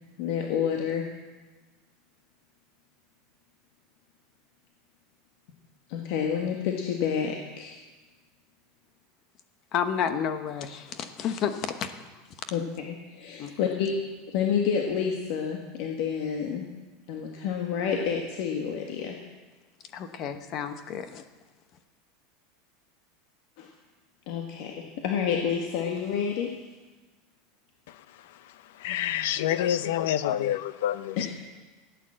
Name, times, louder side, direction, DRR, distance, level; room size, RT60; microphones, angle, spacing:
voice 1, 0.2-1.0 5.9-7.8 12.5-13.9 14.3-16.6 17.1-19.1 23.6-23.7 24.3-26.5, left 7 dB, 50° left, 1 dB, 1.5 m, -29 dB
voice 2, 9.7-11.9 13.4-13.5 19.9-21.2, left 8 dB, 30° left, 9 dB, 1.0 m, -31 dB
voice 3, 28.8-31.3, left 11 dB, 70° left, 14 dB, 0.7 m, -27 dB
15.5 x 9.2 x 7.6 m, 1.2 s
supercardioid pair, 175°, 0 cm